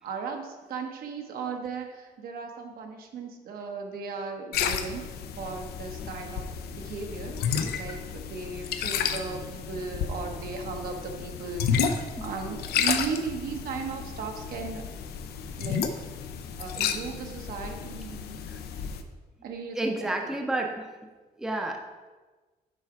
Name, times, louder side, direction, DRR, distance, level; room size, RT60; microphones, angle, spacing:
voice 1, 0.0-5.0 5.4-6.5 6.8-7.4 7.7-14.8 15.6-15.9 16.6-18.4 19.4-20.3, right 5 dB, 70° right, 3 dB, 1.0 m, -36 dB
sound 1, 4.5-19.0, left 7 dB, 85° left, 0.6 m, -32 dB
voice 2, 19.7-20.9 21.4-22.1, right 1 dB, 5° right, 2 dB, 0.6 m, -31 dB
7.5 x 4.5 x 4.8 m, 1.3 s
cardioid pair, 155°, 16 cm